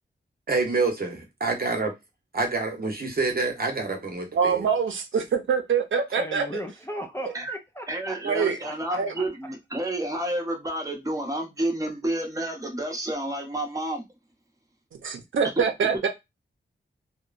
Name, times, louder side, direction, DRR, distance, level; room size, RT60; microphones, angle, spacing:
voice 1, 0.5-1.9 2.3-4.7, right 3 dB, 50° right, 0.9 m, -27 dB
voice 2, 4.3-6.4 7.2-7.3 8.2-8.6 9.0-9.1 15.0-16.1, right 6 dB, 80° right, 0.6 m, -24 dB
voice 3, 6.1-8.2 8.6-9.2, equal, 15° left, 0.5 m, -37 dB
voice 4, 7.9-14.1 15.6-15.7, right 1 dB, 15° right, 0.9 m, -30 dB
2.9 x 2.2 x 2.4 m
wide cardioid pair, 100°, 20 cm